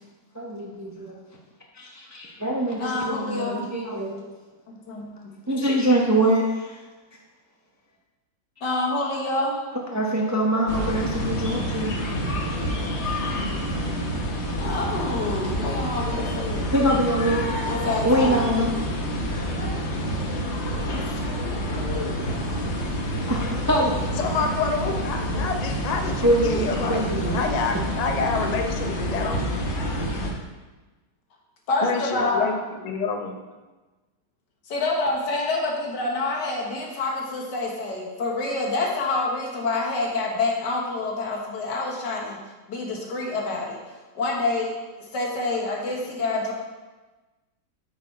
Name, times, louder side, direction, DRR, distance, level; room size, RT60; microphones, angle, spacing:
voice 1, 0.3-1.2 1.7-4.2 5.5-6.8 9.9-12.0 16.7-17.4 18.0-18.7 20.1-20.2 23.3-23.9 26.2-27.4, right 1 dB, 20° right, -2 dB, 0.5 m, -24 dB
voice 2, 2.8-3.6 4.7-5.2 8.6-9.6 14.6-16.7 17.7-18.4 21.5-22.7 31.7-32.5 34.7-42.4 42.7-43.8 44.2-44.7 45.1-46.5, left 2 dB, 85° left, -1 dB, 2.0 m, -27 dB
sound 1, 10.7-30.3, equal, 45° left, 1.1 m, -28 dB
voice 3, 24.2-27.0 27.3-29.6 31.8-33.4, left 4 dB, 65° left, 4 dB, 0.4 m, -28 dB
8.5 x 4.7 x 4.5 m, 1.2 s
omnidirectional pair, 1.8 m